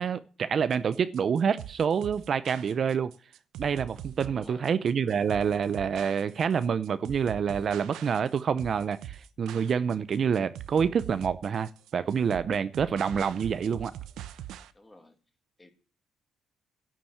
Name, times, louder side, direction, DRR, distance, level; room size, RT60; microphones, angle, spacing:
voice 1, 0.0-3.1 3.6-13.9, right 7 dB, 45° right, 0.6 m, -27 dB
sound 1, 0.7-14.7, right 11 dB, 80° right, 1.0 m, -43 dB
voice 2, 4.3-4.7 14.7-15.2 15.6-15.7, left 1 dB, 15° left, 2.3 m, -51 dB
11.5 x 7.4 x 9.9 m
cardioid pair, 130°, 0 cm